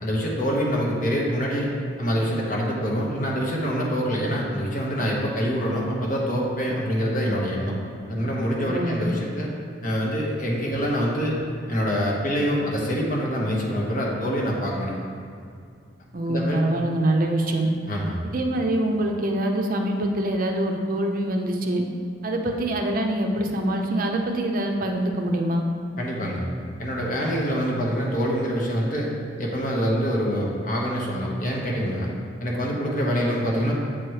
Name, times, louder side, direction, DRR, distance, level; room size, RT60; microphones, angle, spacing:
voice 1, 0.0-1.7 2.0-7.7 8.1-9.5 9.8-11.4 11.7-15.0 16.3-16.6 17.9-18.2 26.0-26.5 26.8-29.1 29.4-32.1 32.4-33.7, equal, 45° left, -3 dB, 1.0 m, -25 dB
voice 2, 8.7-9.0 16.1-17.7 18.2-21.8 22.2-25.6, right 1 dB, 50° right, 3 dB, 0.6 m, -24 dB
7.6 x 3.1 x 4.7 m, 2.3 s
head